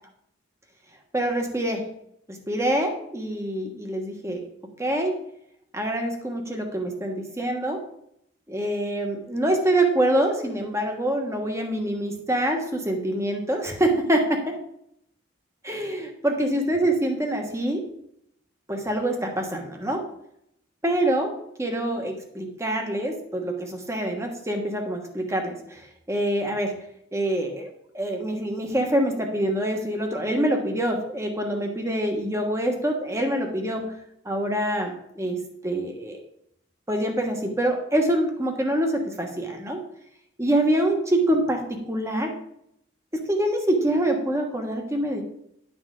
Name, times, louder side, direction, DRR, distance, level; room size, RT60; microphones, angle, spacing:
voice 1, 1.1-1.9 2.3-4.5 4.8-5.2 5.7-7.8 8.5-14.6 15.6-17.8 18.7-20.0 20.8-21.3 21.6-26.8 27.1-27.7 27.9-34.0 34.2-36.2 36.9-39.8 40.4-42.3 43.1-45.2, right 1 dB, 15° right, 3 dB, 1.1 m, -25 dB
10.5 x 6.2 x 3.7 m, 0.75 s
head